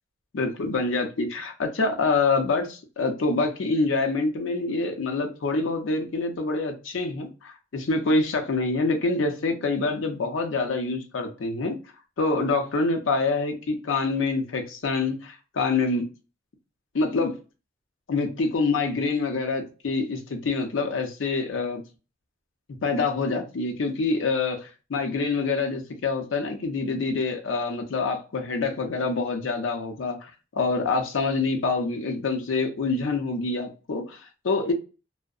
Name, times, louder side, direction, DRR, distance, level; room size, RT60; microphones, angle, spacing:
voice 1, 0.3-11.8 12.2-16.1 16.9-17.4 18.1-21.8 22.8-34.7, left 3 dB, 85° left, 0.5 m, -26 dB
2.6 x 2.0 x 2.4 m
head